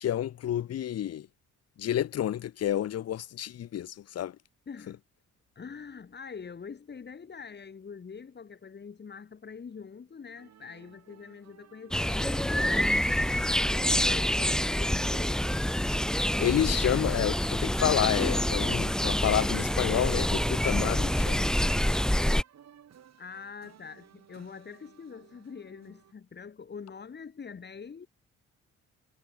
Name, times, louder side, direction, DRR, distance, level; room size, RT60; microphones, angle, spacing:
voice 1, 0.0-1.3 1.8-4.3 16.4-21.4, left 11 dB, 55° left, 0.9 m, -29 dB
voice 2, 4.7-5.0 5.6-12.9 13.3-15.4 23.2-28.1, left 6 dB, 35° left, 2.2 m, -44 dB
sound 1, 10.4-26.1, right 9 dB, 60° right, 7.2 m, -57 dB
sound 2, 11.9-22.4, left 1 dB, ahead, 0.6 m, -27 dB
cardioid pair, 90°, 30 cm